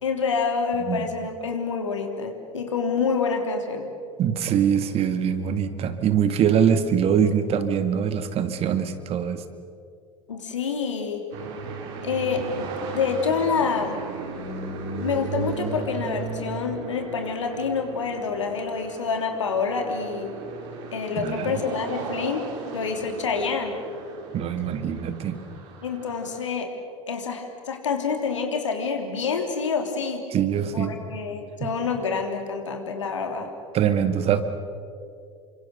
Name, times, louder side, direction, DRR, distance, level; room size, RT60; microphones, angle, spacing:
voice 1, 0.0-3.9 10.3-11.2 12.0-12.7 12.9-14.0 15.0-20.3 20.9-22.4 22.7-23.7 25.8-26.7 27.1-30.2 30.7-33.5, left 5 dB, 75° left, 4 dB, 3.4 m, -27 dB
voice 2, 4.2-9.4 21.2-21.6 24.3-25.4 30.3-31.0 31.6-31.7 33.7-34.4, right 8 dB, 40° right, 10 dB, 2.0 m, -23 dB
sound 1, 11.3-26.4, right 4 dB, 55° right, 4.9 m, -36 dB
29.5 x 25.0 x 6.7 m, 2.4 s
figure-of-eight pair, 70°, 16 cm